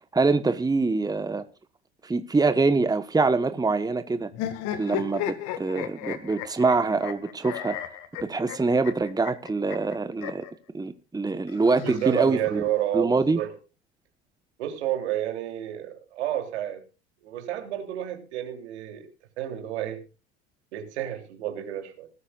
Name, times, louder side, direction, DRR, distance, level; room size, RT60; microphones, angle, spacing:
voice 1, 0.1-1.4 2.0-4.3 4.8-7.8 8.2-10.4 10.7-12.6 12.9-13.4, right 3 dB, 10° right, 1.3 m, -24 dB
sound 1, 4.3-10.5 11.5-12.6, left 10 dB, 60° left, 2.2 m, -35 dB
voice 2, 11.8-13.5 14.6-16.8 17.2-19.1 19.4-20.0 20.7-22.1, right 12 dB, 75° right, 3.4 m, -30 dB
20.0 x 13.0 x 2.5 m
hypercardioid pair, 75°, 34 cm